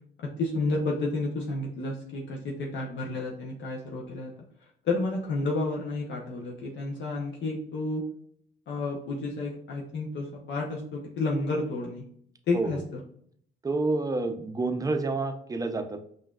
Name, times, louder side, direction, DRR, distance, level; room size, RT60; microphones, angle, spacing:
voice 1, 0.4-4.3 4.8-8.0 8.7-12.0 12.5-12.8, left 2 dB, 65° left, -2 dB, 0.8 m, -31 dB
voice 2, 13.6-16.0, right 3 dB, 20° right, 6 dB, 0.5 m, -28 dB
5.4 x 2.5 x 2.3 m, 0.65 s
cardioid pair, 90°, 20 cm